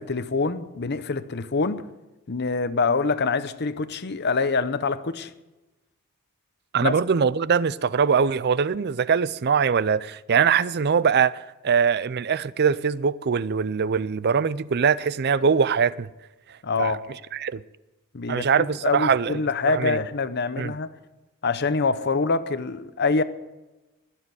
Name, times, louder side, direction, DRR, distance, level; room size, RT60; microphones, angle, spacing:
voice 1, 0.0-1.8 2.3-5.3 6.8-6.9 16.6-17.0 18.1-20.9 21.4-23.2, left 4 dB, 50° left, 0.8 m, -25 dB
voice 2, 6.7-16.1 16.8-17.0 17.3-17.6 18.3-19.4 19.7-20.0 20.6-20.7, right 6 dB, 45° right, 0.5 m, -22 dB
20.5 x 7.5 x 8.2 m
head